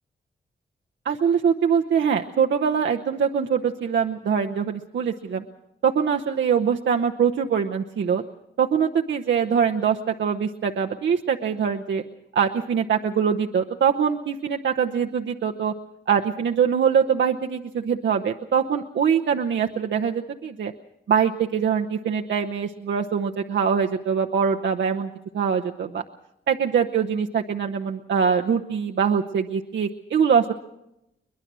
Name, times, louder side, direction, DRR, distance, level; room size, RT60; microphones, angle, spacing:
voice 1, 1.0-5.4 5.8-8.2 8.6-12.0 12.3-15.7 16.1-20.7 21.1-26.0 26.5-30.5, right 7 dB, 70° right, 3 dB, 0.9 m, -23 dB
22.5 x 20.5 x 6.2 m, 0.86 s
cardioid pair, 50°, 19 cm